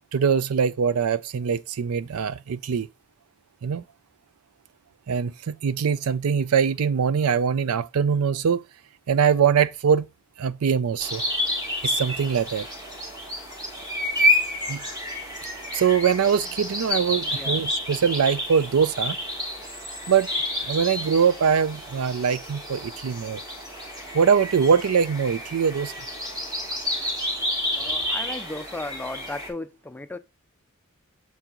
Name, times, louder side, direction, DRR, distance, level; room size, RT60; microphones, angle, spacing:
voice 1, 0.1-2.9 3.6-3.8 5.1-8.6 9.1-10.1 10.4-11.2 11.8-12.7 14.7-14.8 15.7-19.2 20.1-20.3 20.6-23.4 24.1-25.9, right 7 dB, 80° right, 0.4 m, -22 dB
sound 1, 11.0-29.5, left 1 dB, 20° right, 2.2 m, -29 dB
voice 2, 17.3-17.6 27.8-30.2, left 2 dB, 10° left, 0.4 m, -35 dB
7.0 x 4.5 x 3.8 m
head